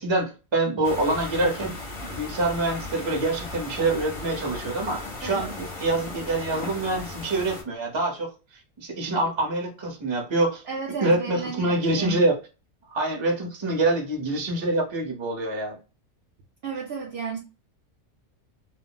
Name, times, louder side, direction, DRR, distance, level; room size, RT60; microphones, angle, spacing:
voice 1, 0.0-1.8 2.1-8.3 8.8-10.6 11.0-12.4 12.9-15.8, right 2 dB, 30° right, 0.6 m, -25 dB
sound 1, 0.8-7.6, left 2 dB, 35° left, 0.6 m, -37 dB
voice 2, 5.2-5.6 10.6-12.2 16.6-17.4, right 5 dB, 65° right, 0.6 m, -33 dB
2.3 x 2.0 x 3.7 m
omnidirectional pair, 1.5 m